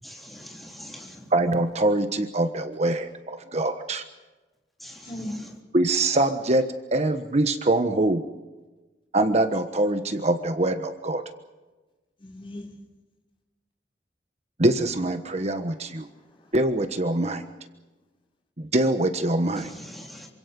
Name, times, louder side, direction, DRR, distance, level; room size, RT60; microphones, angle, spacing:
voice 1, 0.0-1.3 4.8-5.1 19.6-20.3, equal, ahead, -1 dB, 3.9 m, -43 dB
voice 2, 1.3-4.0 5.7-8.2 9.1-11.2 14.6-16.1 16.5-17.4 18.6-19.7, right 2 dB, 40° right, 8 dB, 1.3 m, -24 dB
voice 3, 5.0-5.4 12.2-12.7 15.4-16.6, left 1 dB, 30° left, -2 dB, 6.4 m, -40 dB
27.5 x 25.5 x 5.4 m, 1.2 s
head